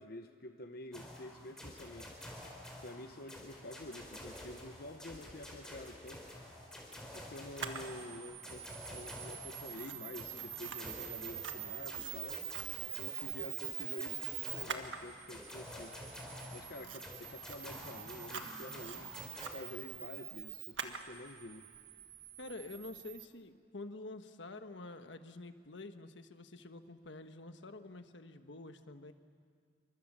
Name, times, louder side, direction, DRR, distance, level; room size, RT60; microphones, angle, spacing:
voice 1, 0.0-2.1 2.8-6.3 7.1-12.4 12.9-16.0 16.5-19.1 19.5-21.7, left 1 dB, 55° left, 6 dB, 0.9 m, -49 dB
sound 1, 0.9-19.5, left 1 dB, 5° left, 4.5 m, -49 dB
Camera, 7.6-23.3, right 10 dB, 85° right, 1.7 m, -44 dB
voice 2, 22.4-29.1, left 2 dB, 75° left, 8 dB, 1.3 m, -48 dB
28.5 x 24.5 x 7.5 m, 2.2 s
head